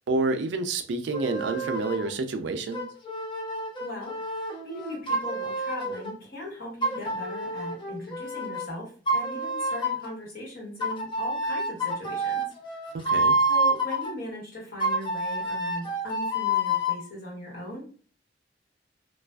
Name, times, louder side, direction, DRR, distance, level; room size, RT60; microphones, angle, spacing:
voice 1, 0.1-2.9 12.9-13.4, right 3 dB, 70° right, 0.4 m, -28 dB
sound 1, 1.1-2.1 2.7-6.1 6.8-8.7 9.1-10.1 10.8-14.1 14.8-17.0, right 1 dB, 25° left, 0.5 m, -28 dB
voice 2, 3.8-12.5 13.5-17.8, left 1 dB, 55° left, 1.3 m, -39 dB
2.4 x 2.3 x 2.2 m
head